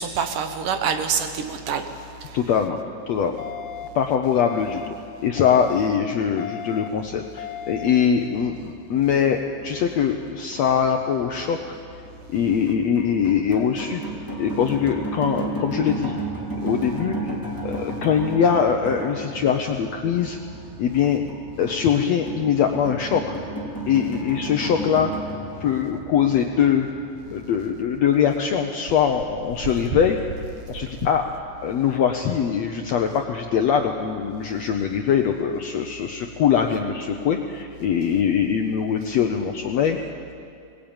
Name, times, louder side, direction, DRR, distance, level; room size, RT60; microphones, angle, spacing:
voice 1, 0.0-1.9 2.2-2.4, right 6 dB, 70° right, 7 dB, 2.7 m, -26 dB
voice 2, 2.3-2.8 3.1-3.5 3.9-4.9 5.2-11.7 12.3-14.0 14.4-16.2 16.6-17.3 17.6-20.4 20.8-21.2 21.6-23.4 23.9-25.1 25.6-26.9 27.3-30.2 30.7-31.2 31.6-40.0, left 7 dB, 70° left, 4 dB, 1.6 m, -22 dB
sound 1, 3.4-3.9 4.4-4.9 5.4-5.9 6.4-6.9 7.4-7.9, left 11 dB, 90° left, 3.0 m, -35 dB
sound 2, 8.3-28.0, right 1 dB, 5° left, 2.2 m, -34 dB
21.0 x 20.0 x 8.9 m, 2.4 s
omnidirectional pair, 4.1 m